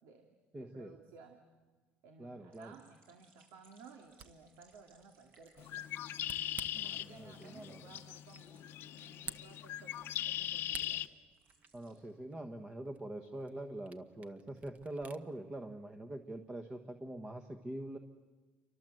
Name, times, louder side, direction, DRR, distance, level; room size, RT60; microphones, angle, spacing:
voice 1, 0.0-1.4 2.0-5.9 6.8-11.0, right 5 dB, 75° right, 4 dB, 2.4 m, -58 dB
voice 2, 0.5-0.9 2.2-2.8 6.7-7.8 11.7-18.0, right 1 dB, 15° right, 6 dB, 1.3 m, -44 dB
sound 1, 2.5-10.9 11.3-12.0, right 3 dB, 50° right, 7.8 m, -68 dB
Camera, 3.9-15.2, right 5 dB, 30° right, 1.1 m, -54 dB
Bird, 5.6-11.1, left 12 dB, 55° left, 0.9 m, -40 dB
29.0 x 24.5 x 7.8 m, 1.4 s
cardioid pair, 145°, 5 cm